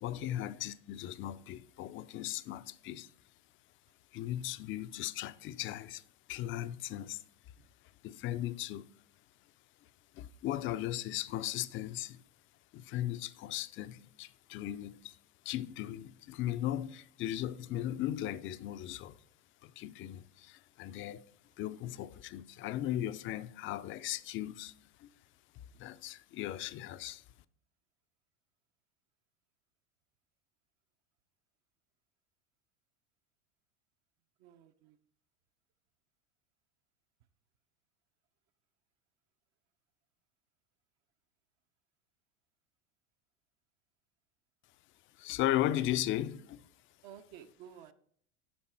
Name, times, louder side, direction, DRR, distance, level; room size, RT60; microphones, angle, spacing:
voice 1, 0.0-3.1 4.1-6.0 6.3-7.2 8.0-8.8 10.1-12.2 12.7-15.2 15.5-19.2 19.6-21.3 21.6-24.7 25.0-25.1 25.6-27.2 45.2-46.6, left 13 dB, 35° left, 0.4 m, -37 dB
voice 2, 34.4-35.0 47.0-47.9, right 9 dB, 50° right, 0.7 m, -52 dB
8.6 x 5.3 x 4.4 m
hypercardioid pair, 105°, 36 cm